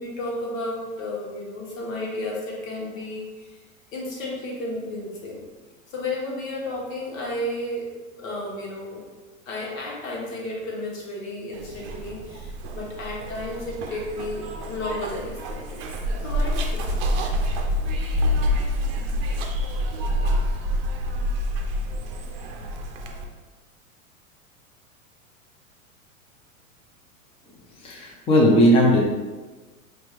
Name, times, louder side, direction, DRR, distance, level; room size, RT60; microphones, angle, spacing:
voice 1, 0.0-3.6 3.9-5.4 5.9-7.9 8.2-9.0 9.5-15.8 16.2-17.3, left 1 dB, 75° left, -3 dB, 1.2 m, -33 dB
Zipper (clothing), 11.5-23.3, equal, 45° right, 0.6 m, -27 dB
voice 2, 27.8-29.0, equal, 15° left, -2 dB, 0.5 m, -17 dB
4.3 x 2.4 x 3.1 m, 1.3 s
hypercardioid pair, 105°, 41 cm